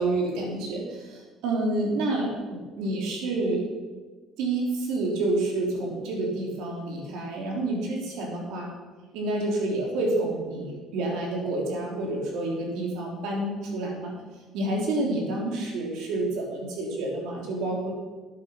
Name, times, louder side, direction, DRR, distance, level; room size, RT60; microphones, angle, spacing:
voice 1, 0.0-3.7 4.4-8.7 9.1-14.1 14.5-17.9, right 2 dB, 80° right, 0 dB, 3.4 m, -28 dB
11.0 x 8.8 x 5.8 m, 1.3 s
cardioid pair, 125°, 0 cm